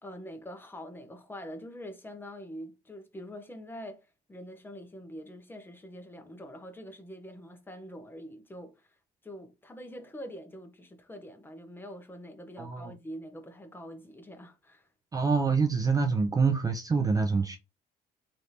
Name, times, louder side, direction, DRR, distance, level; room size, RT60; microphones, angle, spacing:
voice 1, 0.0-9.0 9.2-14.9, equal, 10° left, 0.7 m, -44 dB
voice 2, 12.6-12.9 15.1-17.6, right 4 dB, 20° right, 0.4 m, -26 dB
3.3 x 2.6 x 2.8 m
cardioid pair, 110°, 17 cm